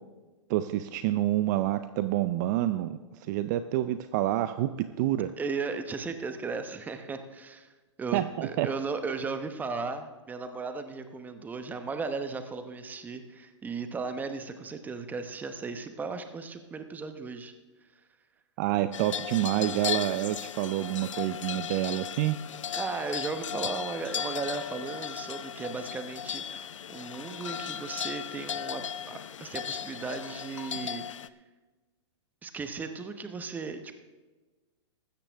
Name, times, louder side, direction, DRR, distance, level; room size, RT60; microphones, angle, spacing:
voice 1, 0.5-3.0 3.3-5.3 8.1-8.7 18.6-22.4, right 14 dB, 40° right, 11 dB, 0.5 m, -28 dB
voice 2, 5.4-7.7 8.0-17.5 22.7-31.0 32.4-33.9, right 4 dB, 10° right, 8 dB, 0.9 m, -36 dB
sound 1, 18.9-31.3, left 8 dB, 90° left, 0.5 m, -36 dB
15.0 x 13.0 x 3.5 m, 1.3 s
hypercardioid pair, 135°, 16 cm